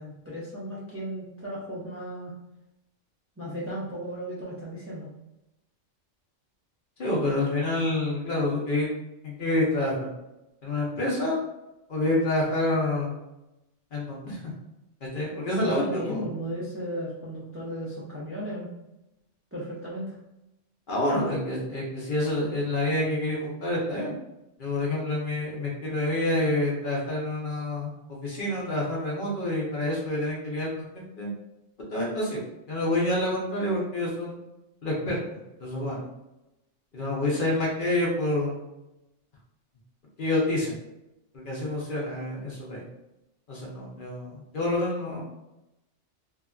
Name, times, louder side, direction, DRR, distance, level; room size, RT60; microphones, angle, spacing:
voice 1, 0.0-2.3 3.4-5.1 15.5-18.7 19.5-20.2, equal, 20° right, -7 dB, 0.3 m, -35 dB
voice 2, 7.0-8.9 9.2-10.1 10.6-11.4 11.9-13.2 13.9-14.4 15.0-16.2 20.9-24.1 24.6-31.3 31.9-32.4 32.7-34.4 34.8-35.2 35.6-36.1 36.9-38.6 40.2-40.8 41.3-42.8 43.5-45.2, left 1 dB, 50° left, -3 dB, 0.8 m, -28 dB
2.7 x 2.4 x 2.3 m, 0.92 s
omnidirectional pair, 1.2 m